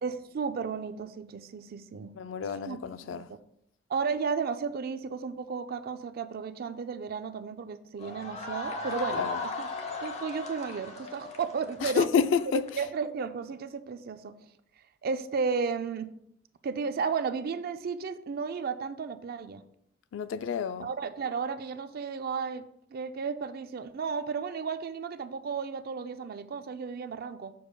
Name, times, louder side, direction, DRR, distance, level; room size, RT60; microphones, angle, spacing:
voice 1, 0.0-2.2 2.7-3.2 3.9-9.7 10.0-12.1 12.8-14.4 15.0-16.1 16.6-19.6 20.8-27.5, right 5 dB, 50° right, 0.4 m, -33 dB
voice 2, 2.2-3.3 9.1-9.4 11.8-12.7 20.1-20.9, left 6 dB, 70° left, 0.3 m, -29 dB
sound 1, 8.0-12.7, left 3 dB, 35° left, 0.7 m, -37 dB
6.9 x 6.2 x 2.2 m
head